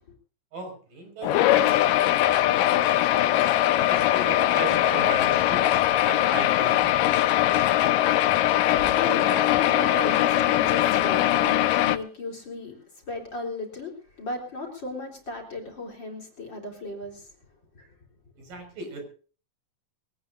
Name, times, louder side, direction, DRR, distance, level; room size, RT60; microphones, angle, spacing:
voice 1, 0.5-1.8 2.5-2.8 3.2-3.4 3.9-6.9 18.4-19.0, right 3 dB, 80° right, 5 dB, 7.1 m, -37 dB
sound 1, 1.2-12.0, left 13 dB, 85° left, 2.5 m, -21 dB
voice 2, 8.7-17.3 17.7-17.9, left 3 dB, 35° left, 2 dB, 4.2 m, -35 dB
22.5 x 18.0 x 2.6 m, 0.40 s
omnidirectional pair, 3.9 m